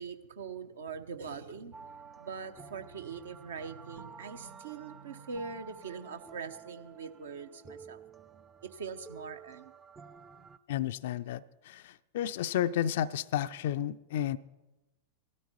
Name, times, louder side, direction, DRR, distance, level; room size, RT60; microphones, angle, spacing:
voice 1, 0.0-8.0 8.6-9.7, right 5 dB, 65° right, 9 dB, 0.9 m, -42 dB
sound 1, 1.7-10.6, right 6 dB, 15° right, 0.5 m, -51 dB
voice 2, 10.7-14.4, left 11 dB, 55° left, 12 dB, 0.4 m, -32 dB
16.5 x 13.0 x 4.5 m, 1.0 s
figure-of-eight pair, 90°, 0 cm